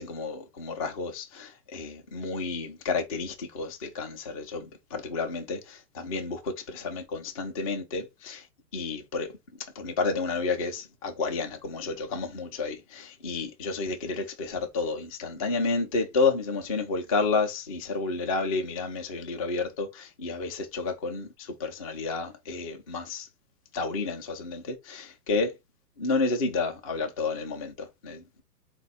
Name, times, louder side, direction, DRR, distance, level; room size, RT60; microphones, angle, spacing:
voice 1, 0.0-8.4 8.7-9.3 9.8-23.3 23.7-25.5 26.0-28.4, left 4 dB, 25° left, 0.4 m, -31 dB
4.1 x 2.3 x 3.9 m
hypercardioid pair, 135°, 48 cm